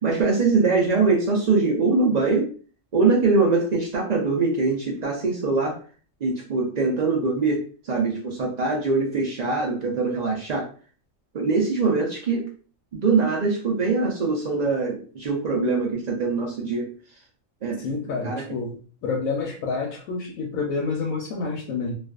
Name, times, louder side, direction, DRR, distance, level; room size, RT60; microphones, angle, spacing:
voice 1, 0.0-2.5 2.9-5.8 6.2-7.6 7.9-10.7 11.3-12.4 13.0-16.8 17.6-17.9 18.2-18.4, right 4 dB, 85° right, -1 dB, 0.3 m, -22 dB
voice 2, 17.8-18.8 19.0-21.9, left 4 dB, 90° left, -1 dB, 1.0 m, -28 dB
2.4 x 2.3 x 2.3 m, 0.39 s
omnidirectional pair, 1.4 m